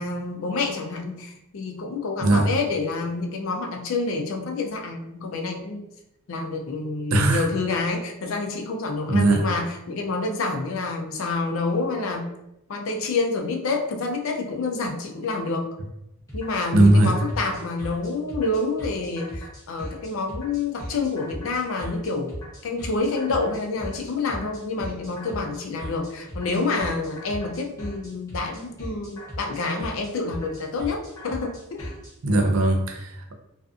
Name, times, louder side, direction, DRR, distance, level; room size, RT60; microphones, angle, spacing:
voice 1, 0.0-5.8 6.3-12.3 12.7-15.7 16.3-22.3 22.6-31.9, left 3 dB, 65° left, 3 dB, 0.4 m, -28 dB
voice 2, 7.1-7.5 9.1-9.5 16.7-17.2 32.2-33.3, right 2 dB, 75° right, 3 dB, 0.5 m, -19 dB
sound 1, 16.3-32.1, equal, 15° left, 0.9 m, -38 dB
2.5 x 2.4 x 2.4 m, 0.87 s
head